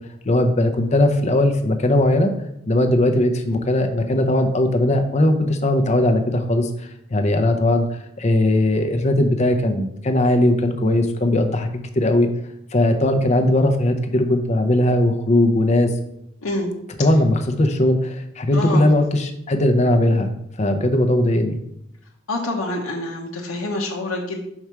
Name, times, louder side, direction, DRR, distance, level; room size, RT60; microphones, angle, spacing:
voice 1, 0.2-2.3 2.7-7.8 8.2-12.3 12.7-15.9 17.0-20.3 20.6-21.6, left 1 dB, 30° left, 6 dB, 0.6 m, -19 dB
voice 2, 16.4-16.7 18.5-18.9 22.3-24.4, left 2 dB, 85° left, -1 dB, 0.9 m, -26 dB
4.8 x 4.6 x 5.6 m, 0.79 s
head